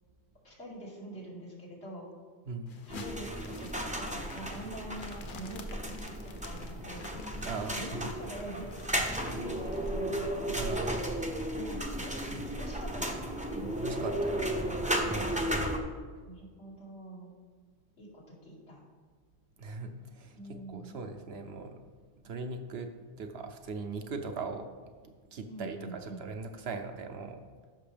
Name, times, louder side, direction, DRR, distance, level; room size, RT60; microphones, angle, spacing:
voice 1, 0.4-2.1 2.9-6.0 6.3-7.1 7.6-11.1 11.5-14.1 15.0-15.5 16.2-17.3 18.0-18.8 20.3-21.0 25.5-26.2, right 1 dB, 75° left, -6 dB, 2.9 m, -45 dB
voice 2, 2.5-2.8 7.4-8.1 10.5-11.0 12.3-12.5 13.8-14.9 19.6-21.8 22.2-27.4, right 3 dB, 70° right, 5 dB, 1.0 m, -40 dB
sound 1, 2.7-9.9, left 4 dB, 55° left, 0.9 m, -51 dB
sound 2, 2.9-15.8, right 1 dB, 10° right, 0.6 m, -34 dB
13.5 x 6.0 x 3.4 m, 1.5 s
omnidirectional pair, 1.1 m